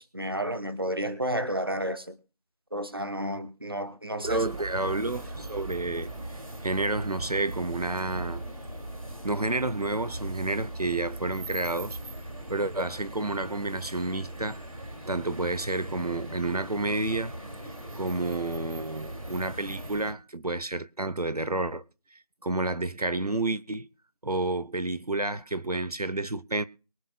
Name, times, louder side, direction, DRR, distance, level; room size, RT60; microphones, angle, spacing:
voice 1, 0.0-2.2 2.7-4.4, right 1 dB, 40° right, 1.0 m, -31 dB
sound 1, 4.2-20.1, right 1 dB, 65° right, 2.6 m, -39 dB
voice 2, 4.2-6.1 6.6-8.5 9.2-12.0 12.5-14.6 15.0-17.3 18.0-21.8 22.1-23.9 24.2-26.6, right 2 dB, 80° right, 0.9 m, -30 dB
23.0 x 8.6 x 2.3 m
figure-of-eight pair, 175°, 19 cm